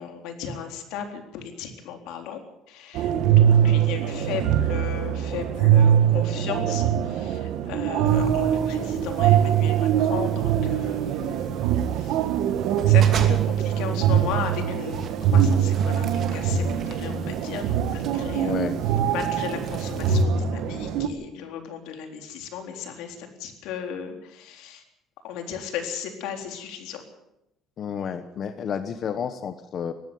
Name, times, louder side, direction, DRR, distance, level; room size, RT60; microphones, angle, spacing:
voice 1, 0.0-2.4 2.7-11.5 11.9-12.2 12.9-18.6 19.1-24.8 25.2-27.0, left 7 dB, 85° left, 5 dB, 4.0 m, -36 dB
sound 1, 3.0-21.1, right 9 dB, 75° right, 1.7 m, -22 dB
sound 2, 8.1-20.2, right 6 dB, 40° right, 2.6 m, -41 dB
voice 2, 18.3-18.8 27.8-29.9, left 7 dB, 40° left, 9 dB, 1.1 m, -31 dB
19.0 x 15.0 x 9.4 m, 0.85 s
cardioid pair, 155°, 0 cm